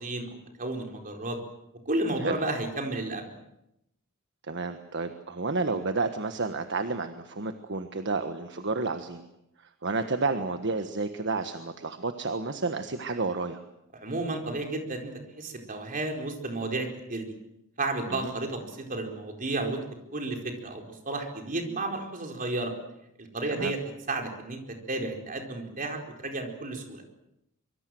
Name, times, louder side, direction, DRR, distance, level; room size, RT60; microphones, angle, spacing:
voice 1, 0.0-1.4 1.8-3.3 13.9-15.1 15.4-17.3 17.8-19.8 20.1-22.7 23.2-23.8 24.1-27.0, right 2 dB, 40° right, 3 dB, 4.5 m, -32 dB
voice 2, 4.5-9.2 9.6-13.6 18.1-18.3 23.5-23.7, right 3 dB, 60° right, 8 dB, 1.5 m, -31 dB
24.5 x 24.0 x 7.8 m, 0.84 s
head